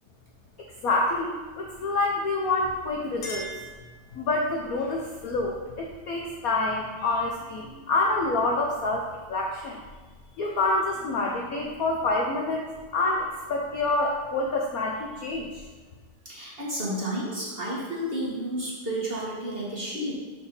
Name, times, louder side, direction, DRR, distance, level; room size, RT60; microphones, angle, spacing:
voice 1, 0.8-3.5 4.1-9.8 10.4-15.6, left 2 dB, 65° left, -1 dB, 0.9 m, -27 dB
Chink clink, 3.1-4.5, right 1 dB, 45° left, 1.8 m, -41 dB
voice 2, 16.2-20.1, right 1 dB, 30° right, -6 dB, 1.7 m, -31 dB
6.9 x 4.2 x 5.4 m, 1.3 s
omnidirectional pair, 2.4 m